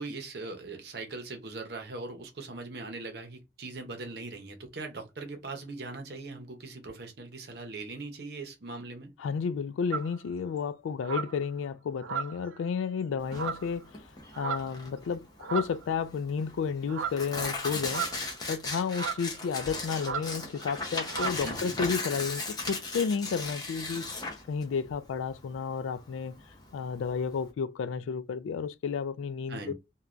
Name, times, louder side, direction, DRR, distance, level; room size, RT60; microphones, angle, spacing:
voice 1, 0.0-9.1 21.4-21.7 29.5-29.7, right 3 dB, 55° right, 0.7 m, -40 dB
voice 2, 9.2-14.0 14.4-24.1 24.5-26.4 26.7-29.7, left 6 dB, 85° left, 0.3 m, -32 dB
sound 1, 9.9-10.2 11.0-11.4 12.0-12.6 13.3-13.7 14.3-14.8 15.4-15.8 16.9-17.3 17.9-18.4 18.9-19.3 20.0-20.3 20.6-20.8 21.1-21.4, right 7 dB, 85° right, 0.4 m, -35 dB
Tearing, 13.2-27.5, left 2 dB, 20° left, 0.7 m, -37 dB
3.1 x 2.3 x 2.4 m
head